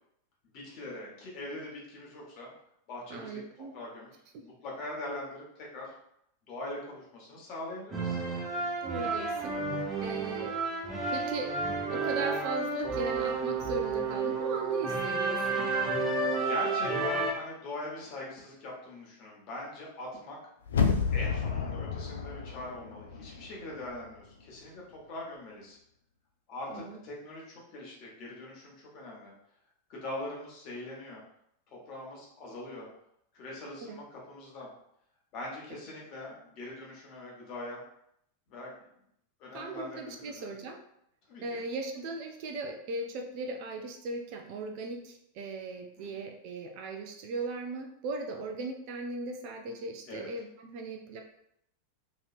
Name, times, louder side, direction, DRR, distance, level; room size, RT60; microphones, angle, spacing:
voice 1, 0.4-2.5 2.9-4.1 4.4-5.9 6.5-8.2 14.3-14.4 16.3-20.4 21.1-25.8 26.5-29.3 29.9-31.2 31.7-32.9 33.3-34.7 35.3-37.8 38.5-38.8 39.4-40.5 41.3-41.6 46.0-46.2 50.1-50.3, left 1 dB, 40° left, -3 dB, 1.1 m, -42 dB
voice 2, 3.1-3.7 8.8-9.6 10.0-10.5 11.1-11.5 11.9-15.7 26.7-27.0 33.8-34.0 39.5-40.8 41.4-51.2, right 3 dB, 45° right, 4 dB, 0.4 m, -38 dB
sound 1, 7.9-17.3, right 3 dB, 15° right, 0.7 m, -31 dB
sound 2, 20.7-23.6 23.9-24.0, left 5 dB, 65° left, 0.3 m, -30 dB
2.9 x 2.8 x 2.5 m, 0.74 s
figure-of-eight pair, 90°, 0 cm